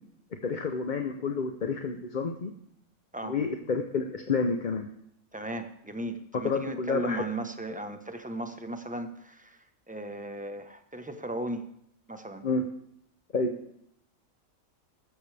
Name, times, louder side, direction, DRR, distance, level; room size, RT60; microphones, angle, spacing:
voice 1, 0.4-2.5 3.2-4.9 6.4-7.2 12.4-12.6 13.3-13.5, left 4 dB, 40° left, 5 dB, 0.9 m, -29 dB
voice 2, 5.3-9.6 9.9-11.7 12.1-12.4, right 1 dB, 5° right, 7 dB, 1.0 m, -36 dB
15.0 x 13.5 x 3.5 m, 0.74 s
omnidirectional pair, 1.4 m